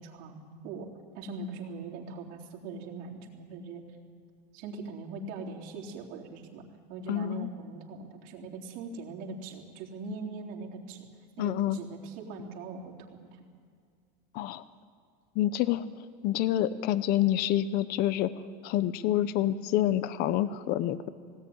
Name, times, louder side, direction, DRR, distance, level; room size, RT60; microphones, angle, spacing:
voice 1, 0.0-3.8 4.5-11.1 11.4-13.3, right 3 dB, 60° right, -1 dB, 3.8 m, -41 dB
voice 2, 7.1-7.5 11.4-11.8 14.3-14.6 15.3-15.9 16.2-18.3 18.6-21.1, left 12 dB, 45° left, 14 dB, 0.9 m, -27 dB
20.0 x 18.5 x 9.6 m, 2.2 s
cardioid pair, 160°, 21 cm